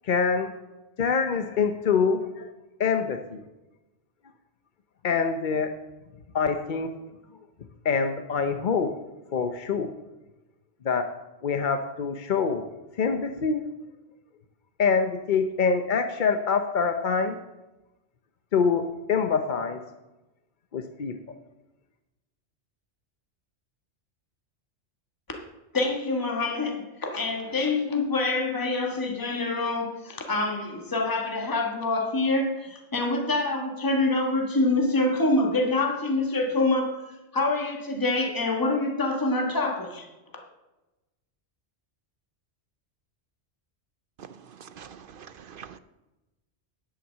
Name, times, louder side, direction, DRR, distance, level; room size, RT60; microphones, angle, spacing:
voice 1, 0.0-0.5 1.0-2.5 2.8-3.4 5.0-5.8 6.3-6.9 7.8-8.9 9.3-9.9 10.8-11.1 11.4-12.6 13.0-13.6 14.8-17.4 18.5-19.8 20.7-21.2, left 5 dB, 50° left, 0.7 m, -25 dB
voice 2, 25.7-37.0 37.3-40.1, left 2 dB, 20° left, 1.4 m, -26 dB
voice 3, 44.2-45.8, right 7 dB, 60° right, 0.6 m, -45 dB
11.0 x 5.8 x 7.4 m
omnidirectional pair, 1.2 m